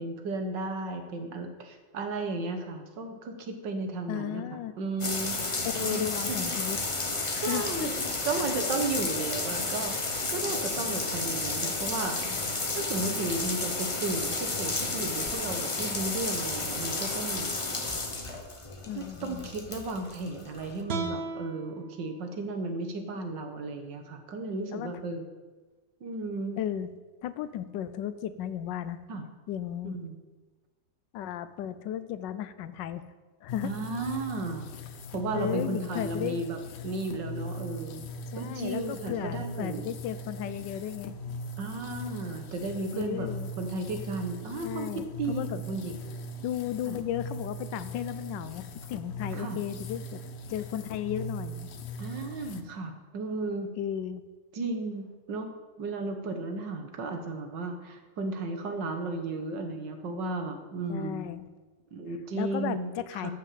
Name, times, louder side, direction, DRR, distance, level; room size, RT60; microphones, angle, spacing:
voice 1, 0.0-5.3 5.8-6.5 7.4-10.0 10.3-12.2 12.8-17.5 19.0-25.2 26.0-26.6 29.1-29.2 29.8-30.2 33.6-34.7 35.1-36.6 36.8-38.1 38.4-39.9 41.6-43.3 43.6-46.0 46.9-47.0 49.3-49.6 52.0-53.7 54.5-55.5 55.8-61.3 61.9-63.3, right 3 dB, 85° right, 5 dB, 1.9 m, -34 dB
voice 2, 4.1-4.7 5.6-6.8 7.3-7.9 8.3-8.4 18.9-19.5 24.7-24.9 26.6-26.9 27.2-29.0 29.5-30.0 31.1-33.0 33.4-33.7 35.3-36.4 38.3-41.1 42.9-43.5 44.6-45.6 46.4-50.2 50.5-51.7 53.8-54.2 60.9-61.5 62.3-63.3, left 10 dB, 90° left, 13 dB, 1.3 m, -34 dB
sound 1, 5.0-20.8, left 3 dB, 25° left, 0.8 m, -32 dB
sound 2, 20.9-24.1, right 4 dB, 45° right, 0.9 m, -39 dB
sound 3, 33.5-52.6, equal, 60° left, 0.7 m, -40 dB
12.0 x 5.8 x 7.5 m, 1.3 s
omnidirectional pair, 1.9 m